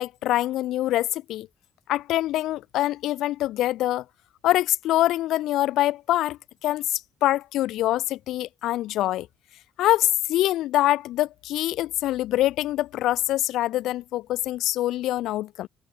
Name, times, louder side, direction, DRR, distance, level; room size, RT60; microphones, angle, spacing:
voice 1, 0.0-1.5 1.9-4.0 4.4-9.3 9.8-15.7, left 15 dB, 85° left, 0.7 m, -24 dB
open air
cardioid pair, 90°, 0 cm